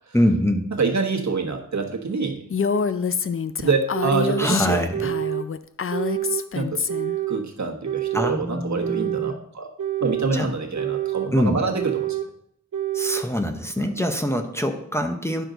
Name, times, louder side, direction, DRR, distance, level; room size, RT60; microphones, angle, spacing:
voice 1, 0.1-0.7 4.4-5.1 8.1-9.3 10.3-10.5 11.3-11.6 12.9-15.4, equal, 10° left, 4 dB, 0.8 m, -24 dB
voice 2, 0.7-2.4 3.6-4.8 6.5-6.8 7.3-9.7 10.0-12.2 13.8-13.9, right 4 dB, 65° right, 1 dB, 1.4 m, -26 dB
sound 1, 1.7-1.8 2.7-2.8 3.7-4.5 4.9-5.5 5.9-6.5 6.9-7.4 7.8-8.4 8.8-9.4 9.8-10.3 10.7-11.3 11.7-12.3 12.7-13.3, right 12 dB, 80° right, 0.7 m, -27 dB
Female speech woman speaking, 2.5-7.2, left 6 dB, 45° left, 0.5 m, -26 dB
9.8 x 6.3 x 3.9 m, 0.71 s
wide cardioid pair, 80°, 31 cm